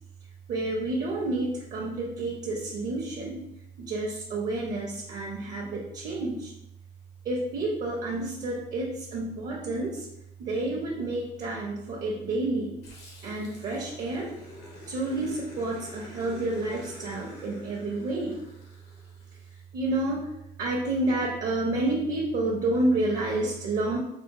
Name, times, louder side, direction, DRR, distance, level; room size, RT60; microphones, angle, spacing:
voice 1, 0.5-3.4 3.8-6.5 7.2-10.1 10.4-12.8 13.2-14.3 14.9-18.4 19.7-20.2 20.6-24.0, right 2 dB, 55° right, -2 dB, 0.6 m, -29 dB
Growling, 12.8-19.5, left 1 dB, 85° left, 1.0 m, -47 dB
3.5 x 2.0 x 2.9 m, 0.84 s
cardioid pair, 110°, 17 cm